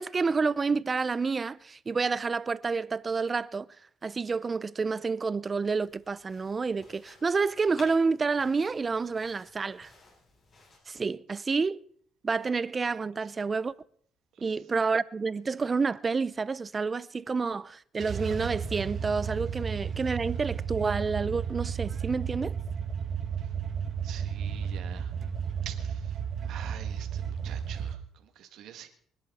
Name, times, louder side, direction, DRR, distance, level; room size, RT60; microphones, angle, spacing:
voice 1, 0.0-3.7 4.0-9.9 10.9-11.8 12.2-13.7 14.4-22.6, right 4 dB, 25° right, 0.5 m, -29 dB
sound 1, 5.8-10.8, left 3 dB, 40° left, 7.3 m, -55 dB
sound 2, 18.0-28.0, right 7 dB, 45° right, 1.7 m, -33 dB
voice 2, 24.0-25.1 25.7-28.9, right 10 dB, 70° right, 2.1 m, -47 dB
25.0 x 10.5 x 4.2 m
cardioid pair, 110°, 0 cm